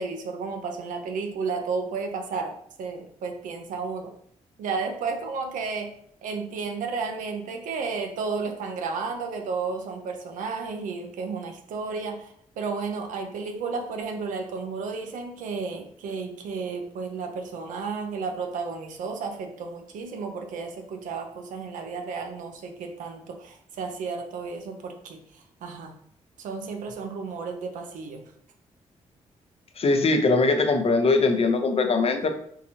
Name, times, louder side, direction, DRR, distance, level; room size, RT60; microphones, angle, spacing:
voice 1, 0.0-4.1 4.6-5.9 6.2-26.0 26.4-28.2, right 4 dB, 80° right, 4 dB, 0.5 m, -32 dB
voice 2, 29.8-32.3, left 3 dB, 50° left, 6 dB, 0.6 m, -21 dB
3.7 x 2.6 x 2.9 m, 0.65 s
supercardioid pair, 45°, 13 cm